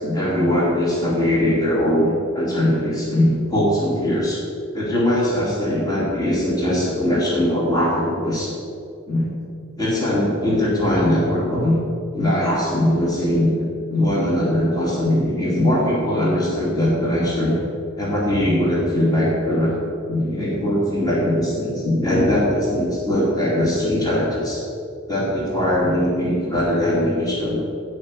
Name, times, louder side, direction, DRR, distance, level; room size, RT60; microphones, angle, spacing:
voice 1, 0.0-4.4 4.7-8.5 9.1-9.3 9.8-11.8 12.1-17.6 18.0-19.7 20.1-24.6 25.1-27.6, left 1 dB, 20° left, -5 dB, 2.9 m, -20 dB
16.5 x 5.6 x 8.3 m, 2.5 s
head